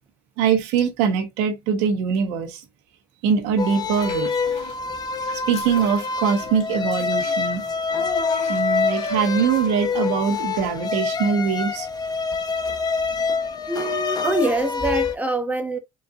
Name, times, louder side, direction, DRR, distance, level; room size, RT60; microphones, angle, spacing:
voice 1, 0.4-2.6 3.2-4.3 5.3-7.6 8.5-11.9, right 7 dB, 85° right, 1.3 m, -22 dB
sound 1, 3.6-15.2, left 5 dB, 35° left, 1.0 m, -26 dB
Child speech kid speaking / Bathtub (filling or washing), 3.9-4.8 5.2-9.4, left 7 dB, 65° left, 1.9 m, -37 dB
voice 2, 13.6-15.8, right 2 dB, 15° right, 1.2 m, -24 dB
4.5 x 3.8 x 2.5 m
supercardioid pair, 90°, 12 cm